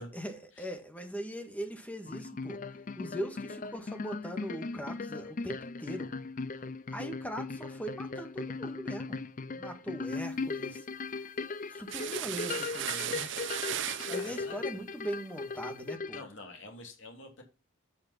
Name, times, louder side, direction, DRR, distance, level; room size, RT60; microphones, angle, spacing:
voice 1, 0.0-2.6 2.9-6.1 6.9-9.2 9.5-11.3 11.7-13.3 13.7-16.2, equal, 5° left, 1.6 m, -40 dB
sound 1, 2.1-16.2, left 4 dB, 40° left, 0.5 m, -38 dB
sound 2, 11.9-14.4, right 11 dB, 60° right, 0.6 m, -36 dB
voice 2, 14.0-14.8 16.1-17.4, left 2 dB, 60° left, 2.8 m, -47 dB
9.3 x 5.5 x 5.7 m
head